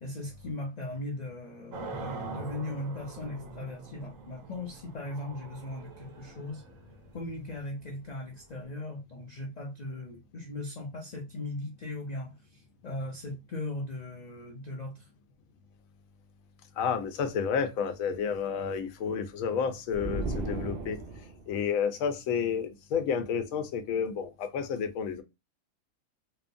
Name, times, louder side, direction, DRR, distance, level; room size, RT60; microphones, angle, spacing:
voice 1, 0.0-6.6 7.1-15.1, left 2 dB, 60° left, 0.4 m, -38 dB
sound 1, 1.7-8.6, right 3 dB, 75° right, 1.1 m, -44 dB
voice 2, 16.8-21.0 21.5-25.2, left 6 dB, 80° left, 1.0 m, -30 dB
sound 2, 19.9-21.6, right 2 dB, 60° right, 0.6 m, -35 dB
3.0 x 2.0 x 2.5 m
omnidirectional pair, 1.4 m